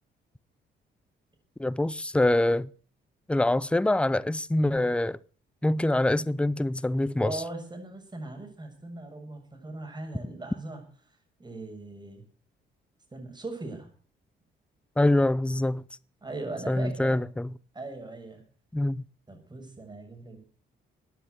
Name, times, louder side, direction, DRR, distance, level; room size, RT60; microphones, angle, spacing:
voice 1, 1.6-2.7 3.3-5.2 5.6-7.4 15.0-15.8 16.7-17.5 18.7-19.0, left 1 dB, 5° left, 0.6 m, -25 dB
voice 2, 7.2-10.8 11.4-12.2 13.1-13.9 16.2-17.2 17.7-18.4 19.3-20.4, right 2 dB, 20° right, 7.2 m, -39 dB
15.0 x 10.0 x 8.1 m
cardioid pair, 90°, 20 cm